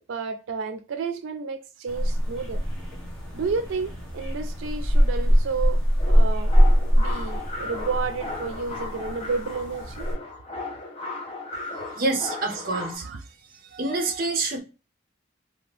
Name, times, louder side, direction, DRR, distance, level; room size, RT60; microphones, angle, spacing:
voice 1, 0.1-2.6 3.3-6.5 7.0-10.1 12.6-13.2, right 4 dB, 90° right, 0.4 m, -31 dB
sound 1, 1.9-10.1, equal, 5° left, 1.0 m, -23 dB
sound 2, 6.0-13.0, left 2 dB, 30° left, 0.6 m, -36 dB
voice 2, 12.0-13.1 13.7-14.6, right 3 dB, 45° right, 0.6 m, -27 dB
2.8 x 2.4 x 3.2 m
head